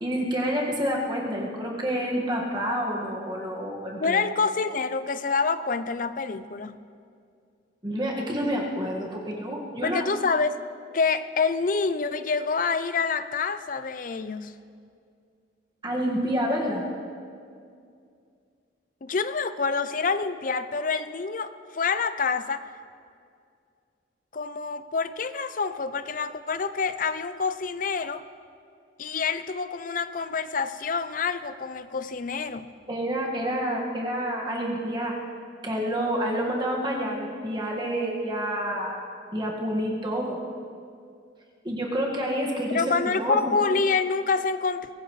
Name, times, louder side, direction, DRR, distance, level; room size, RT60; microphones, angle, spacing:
voice 1, 0.0-4.2 7.8-10.0 15.8-16.9 32.9-35.2 35.6-39.0 39.3-40.4 41.6-43.6, equal, 25° right, -2 dB, 1.8 m, -28 dB
voice 2, 4.0-6.8 9.8-10.6 10.9-14.5 19.0-22.7 24.3-28.2 29.0-32.7 42.7-44.9, left 4 dB, 45° left, 12 dB, 0.5 m, -27 dB
23.5 x 17.0 x 3.2 m, 2.3 s
head